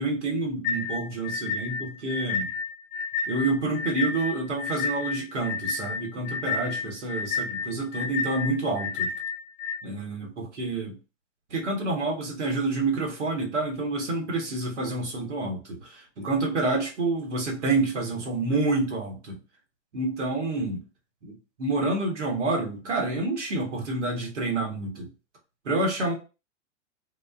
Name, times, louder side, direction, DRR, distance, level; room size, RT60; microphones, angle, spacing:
voice 1, 0.0-2.5 3.3-9.1 9.8-10.9 11.5-19.4 19.9-20.8 21.2-25.1 25.6-26.1, right 2 dB, 75° right, 1.1 m, -28 dB
sound 1, 0.6-9.8, left 5 dB, 25° left, 0.4 m, -31 dB
2.3 x 2.3 x 2.4 m
figure-of-eight pair, 95°, 36 cm